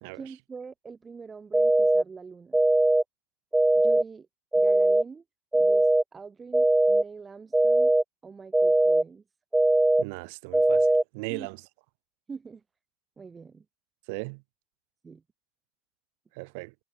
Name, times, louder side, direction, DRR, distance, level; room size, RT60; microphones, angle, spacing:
voice 1, 0.1-2.6 3.7-4.3 4.5-5.2 5.5-7.9 8.2-9.2 11.3-11.5 12.3-12.6 13.2-13.6 15.0-15.2, right 5 dB, 25° right, 7.7 m, -43 dB
sound 1, 1.5-2.0 2.5-3.0 3.5-4.0 4.5-5.0 5.5-6.0 6.5-7.0 7.5-8.0 8.5-9.0 9.5-10.0 10.5-11.0, right 2 dB, 10° right, 1.0 m, -20 dB
voice 2, 10.0-10.9 11.1-11.6 14.1-14.4 16.3-16.7, right 32 dB, 75° right, 1.2 m, -37 dB
hypercardioid pair, 85°, 0 cm